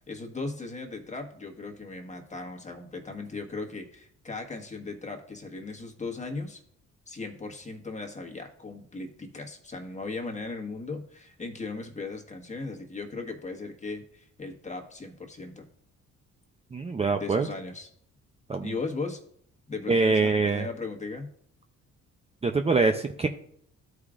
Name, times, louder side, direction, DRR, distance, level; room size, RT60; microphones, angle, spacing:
voice 1, 0.1-6.6 7.1-15.7 17.1-17.9 18.6-19.2 19.7-21.3, left 3 dB, 25° left, 3 dB, 1.4 m, -37 dB
voice 2, 16.7-17.5 18.5-18.7 19.9-20.7 22.4-23.3, right 4 dB, 20° right, 5 dB, 0.5 m, -24 dB
13.0 x 4.9 x 2.5 m, 0.66 s
cardioid pair, 90°, 30 cm